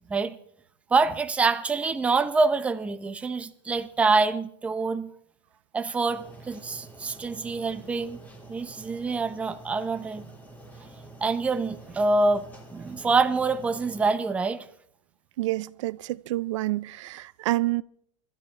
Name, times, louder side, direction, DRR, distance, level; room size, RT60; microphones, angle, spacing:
voice 1, 0.9-5.1 5.7-8.2 8.5-10.3 11.2-14.7, right 3 dB, 10° right, 0.6 m, -26 dB
sound 1, 6.1-14.1, right 2 dB, 10° left, 2.4 m, -48 dB
voice 2, 15.4-17.8, right 17 dB, 70° right, 0.5 m, -28 dB
25.0 x 13.0 x 3.3 m
supercardioid pair, 165°, 16 cm